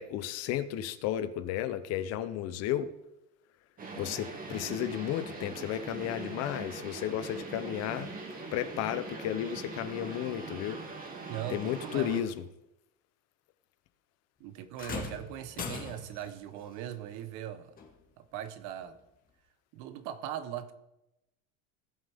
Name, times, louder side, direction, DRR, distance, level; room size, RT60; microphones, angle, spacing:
voice 1, 0.0-2.9 4.0-8.1 8.5-10.8 11.5-12.3, left 11 dB, 45° left, 13 dB, 0.7 m, -33 dB
sound 1, 3.8-12.2, right 3 dB, 25° right, 1.9 m, -42 dB
voice 2, 11.3-12.2 14.4-17.7 18.2-19.0 19.7-20.7, right 11 dB, 55° right, 11 dB, 1.1 m, -40 dB
sound 2, 14.8-16.3 17.8-17.9 18.8-18.9, left 5 dB, 25° left, 1.8 m, -40 dB
18.5 x 7.6 x 3.6 m, 0.89 s
supercardioid pair, 145°, 36 cm